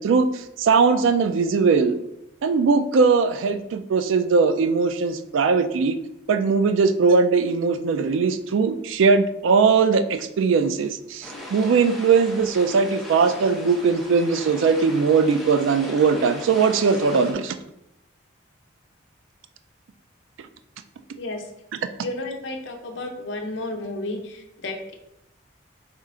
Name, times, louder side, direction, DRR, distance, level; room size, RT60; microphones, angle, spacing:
voice 1, 0.0-2.0 2.4-6.0 6.3-17.5, right 5 dB, 80° right, 9 dB, 0.3 m, -20 dB
sound 1, 11.2-17.3, left 1 dB, ahead, 0.6 m, -38 dB
voice 2, 22.0-24.9, left 2 dB, 70° left, 4 dB, 0.6 m, -32 dB
4.2 x 2.4 x 3.6 m, 0.83 s
head